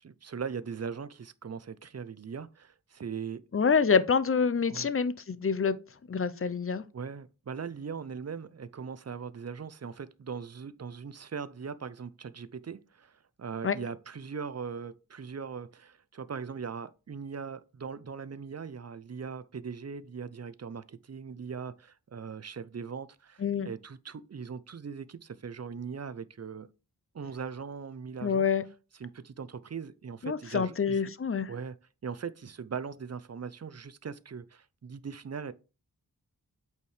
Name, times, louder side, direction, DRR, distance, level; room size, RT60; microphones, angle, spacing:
voice 1, 0.0-3.4 4.7-4.9 6.9-26.7 27.1-28.4 29.0-31.1 31.5-31.8 32.0-35.5, right 6 dB, 40° right, 0.5 m, -40 dB
voice 2, 3.5-5.8 6.1-6.8 13.6-13.8 23.4-23.7 28.2-28.6 30.2-31.5, left 6 dB, 35° left, 0.6 m, -26 dB
8.3 x 4.5 x 3.2 m
wide cardioid pair, 70°, 39 cm